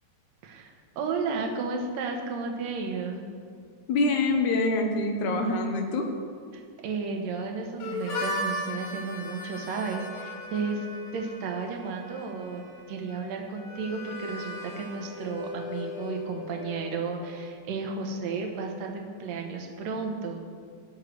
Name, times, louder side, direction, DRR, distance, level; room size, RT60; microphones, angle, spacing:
voice 1, 0.4-3.3 6.5-10.8 11.1-12.6 12.9-20.5, right 4 dB, 70° right, 2 dB, 2.1 m, -33 dB
voice 2, 3.9-6.1, left 2 dB, 75° left, 3 dB, 2.3 m, -25 dB
Harmonica, 7.8-17.4, left 2 dB, 55° left, 1.9 m, -37 dB
17.5 x 6.5 x 3.2 m, 2.2 s
omnidirectional pair, 3.5 m